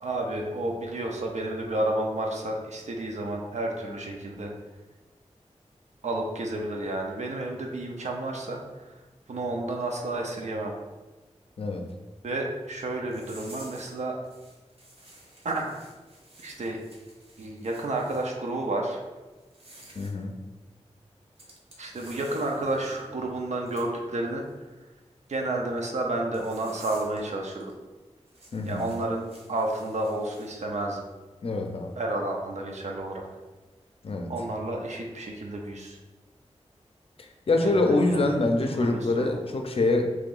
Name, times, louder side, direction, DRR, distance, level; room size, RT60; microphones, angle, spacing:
voice 1, 0.0-4.5 6.0-9.0 9.3-10.7 12.2-14.1 15.4-15.8 16.4-16.8 17.4-19.0 21.8-24.4 25.3-27.7 28.7-31.0 32.0-33.3 34.3-36.0 37.6-38.2 38.6-39.3, right 2 dB, 75° right, 1 dB, 0.5 m, -31 dB
sound 1, 13.1-13.9 14.2-18.3 19.4-20.1 21.4-23.1 23.7-23.9 26.3-27.2 27.5-27.7 28.3-30.5, right 1 dB, 55° right, 0.8 m, -50 dB
voice 2, 19.9-20.3 28.5-28.8 31.4-31.9 34.0-34.3 37.2-40.2, left 2 dB, 55° left, 4 dB, 0.5 m, -25 dB
3.0 x 2.8 x 3.8 m, 1.2 s
wide cardioid pair, 90°, 12 cm